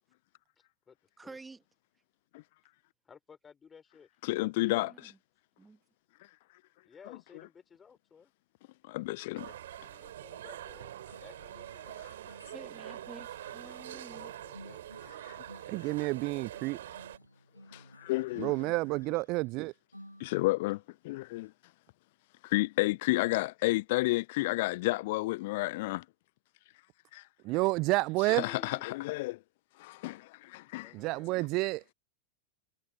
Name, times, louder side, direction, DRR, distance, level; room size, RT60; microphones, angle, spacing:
voice 1, 1.2-1.6 4.6-5.2 5.6-5.8 12.5-14.3, right 3 dB, 10° right, 2.9 m, -50 dB
voice 2, 3.1-4.1 6.8-8.3 10.0-12.1 13.6-14.8 28.3-28.9 30.8-31.3, left 6 dB, 20° left, 5.1 m, -55 dB
voice 3, 4.2-5.1 8.8-9.5 12.0-12.1 15.2-15.4 17.7-18.5 20.2-21.5 22.4-26.0 27.1-27.3 28.2-29.4 29.8-30.9, left 20 dB, 50° left, 0.7 m, -31 dB
sound 1, 9.4-17.2, right 12 dB, 60° right, 5.8 m, -45 dB
sound 2, 11.1-20.8, equal, 90° left, 2.5 m, -56 dB
voice 4, 15.7-16.8 18.4-19.7 27.4-28.4 30.9-31.9, right 23 dB, 40° right, 0.4 m, -30 dB
figure-of-eight pair, 90°, 0 cm